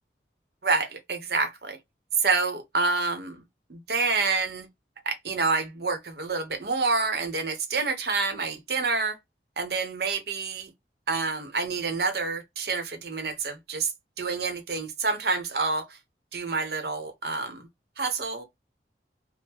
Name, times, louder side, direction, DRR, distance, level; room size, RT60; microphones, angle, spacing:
voice 1, 0.6-1.8 2.2-3.4 3.7-4.7 5.0-9.2 9.6-10.7 11.1-13.9 14.2-16.0 16.3-17.7 18.0-18.4, right 4 dB, 60° right, 0.8 m, -28 dB
3.6 x 2.1 x 2.8 m
head